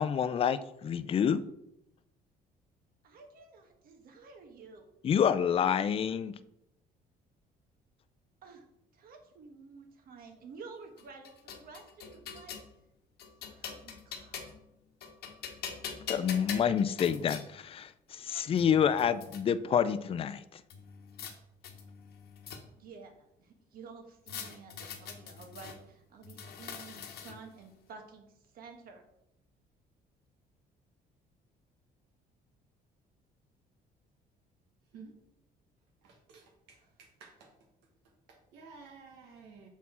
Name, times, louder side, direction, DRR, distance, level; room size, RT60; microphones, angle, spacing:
voice 1, 0.0-1.4 5.0-6.3 16.1-20.6, left 8 dB, 35° left, 14 dB, 0.4 m, -28 dB
voice 2, 3.0-4.8 8.4-8.6 8.9-12.6 13.4-14.4 22.8-23.1 23.4-29.0 36.8-36.9, right 4 dB, 60° right, 4 dB, 1.3 m, -51 dB
sound 1, 11.0-12.7 13.2-14.7 15.0-17.4 18.2-18.3 18.6-19.4 20.7-21.3 21.6-22.9 24.3-25.8 26.2-27.6, left 7 dB, 70° left, 1.1 m, -43 dB
voice 3, 36.0-37.5 38.3-39.7, right 4 dB, 90° right, 1 dB, 1.3 m, -53 dB
7.0 x 4.3 x 4.3 m, 0.84 s
cardioid pair, 110°, 17 cm